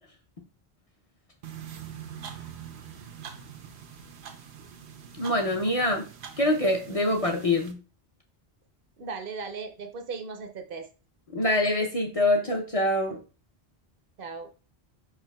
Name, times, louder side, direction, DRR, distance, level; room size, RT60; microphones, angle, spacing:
sound 1, 1.4-7.7, right 8 dB, 90° right, 1.0 m, -44 dB
voice 1, 5.2-6.0 6.4-7.8 11.3-13.2, left 1 dB, 40° left, 1 dB, 0.6 m, -25 dB
voice 2, 9.0-10.9 14.2-14.5, right 4 dB, 65° right, 7 dB, 0.7 m, -37 dB
5.0 x 4.6 x 2.2 m, 0.35 s
omnidirectional pair, 1.1 m